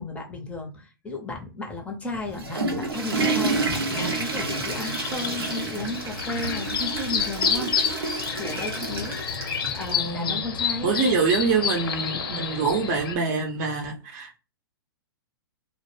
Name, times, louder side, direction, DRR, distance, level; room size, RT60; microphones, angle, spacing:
voice 1, 0.0-11.0, left 2 dB, 10° left, 0.6 m, -34 dB
Water / Toilet flush, 2.1-10.0, right 3 dB, 90° right, 0.7 m, -29 dB
sound 1, 3.9-13.1, left 7 dB, 70° left, 0.7 m, -30 dB
voice 2, 9.9-10.4 10.8-14.4, right 4 dB, 45° right, 0.6 m, -25 dB
2.1 x 2.0 x 3.1 m
hypercardioid pair, 120°, 12 cm